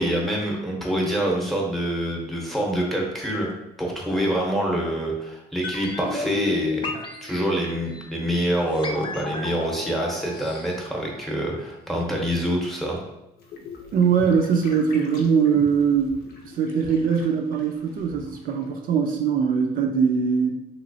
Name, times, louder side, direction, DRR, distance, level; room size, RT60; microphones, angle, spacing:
voice 1, 0.0-3.5 3.8-13.0, equal, ahead, -1 dB, 0.8 m, -26 dB
sound 1, 5.6-11.7 11.9-12.0, left 5 dB, 30° left, 0.4 m, -33 dB
sound 2, 13.4-18.8, left 2 dB, 70° left, 0.7 m, -41 dB
voice 2, 13.9-20.6, right 6 dB, 55° right, 2 dB, 0.4 m, -22 dB
3.0 x 2.9 x 2.7 m, 0.91 s
cardioid pair, 110°, 17 cm